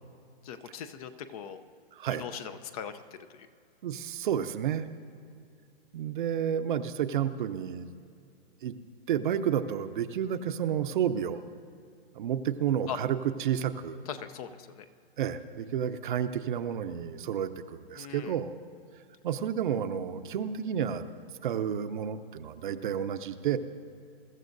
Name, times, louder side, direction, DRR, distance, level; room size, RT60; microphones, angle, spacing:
voice 1, 0.4-1.6 2.2-3.5 12.9-13.0 14.1-14.8 18.0-18.3, left 8 dB, 40° left, 11 dB, 0.7 m, -40 dB
voice 2, 1.9-2.2 3.8-4.9 5.9-7.9 8.6-8.7 9.1-11.4 12.1-14.0 15.2-18.6 19.2-21.0 21.4-23.6, right 9 dB, 55° right, 10 dB, 0.7 m, -30 dB
22.5 x 13.5 x 2.7 m, 2.4 s
hypercardioid pair, 135°, 30 cm